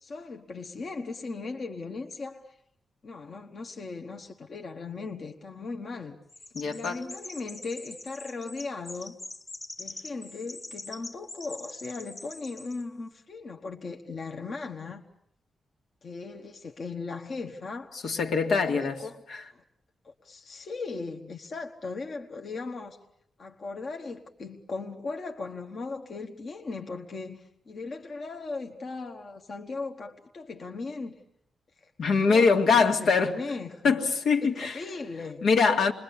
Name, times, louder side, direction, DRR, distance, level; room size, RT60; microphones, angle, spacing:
voice 1, 0.0-2.6 3.0-6.2 6.6-9.2 9.8-15.0 16.0-18.0 18.6-19.2 19.5-19.6 20.0-23.0 23.4-31.2 31.8-31.9 32.2-34.0 34.4-35.4, left 3 dB, 40° left, 1.4 m, -38 dB
Chirp tweet, 6.3-12.8, left 2 dB, 25° left, 1.4 m, -43 dB
voice 2, 6.5-7.0 18.0-19.0 19.3-19.4 32.0-33.4 33.8-34.8 35.4-35.9, left 5 dB, 75° left, 2.4 m, -23 dB
28.0 x 21.5 x 8.6 m
wide cardioid pair, 175°, 0 cm